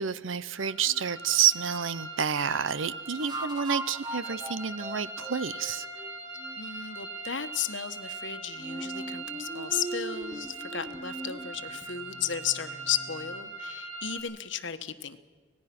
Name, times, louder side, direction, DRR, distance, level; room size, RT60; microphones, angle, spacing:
voice 1, 0.0-5.9, right 8 dB, 85° right, 17 dB, 0.8 m, -29 dB
sound 1, 0.5-14.2, right 3 dB, 70° right, 4.1 m, -41 dB
sound 2, 0.9-1.0 3.2-6.6 8.6-13.4, right 2 dB, 20° right, 1.0 m, -40 dB
voice 2, 6.6-15.2, left 9 dB, 70° left, 10 dB, 1.3 m, -34 dB
25.5 x 19.0 x 6.0 m, 1.5 s
head